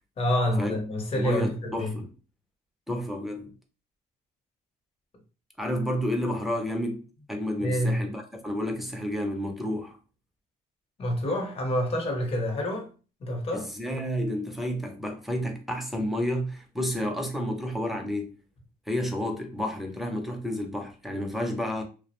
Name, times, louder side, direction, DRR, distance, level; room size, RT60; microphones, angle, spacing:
voice 1, 0.2-1.9 7.6-8.0 11.0-12.9 13.2-13.7, left 1 dB, 35° left, 0.8 m, -27 dB
voice 2, 1.2-2.1 2.9-3.5 5.6-10.0 13.5-18.3 18.9-21.8, equal, ahead, 0.5 m, -30 dB
2.3 x 2.0 x 2.9 m
cardioid pair, 110°, 17 cm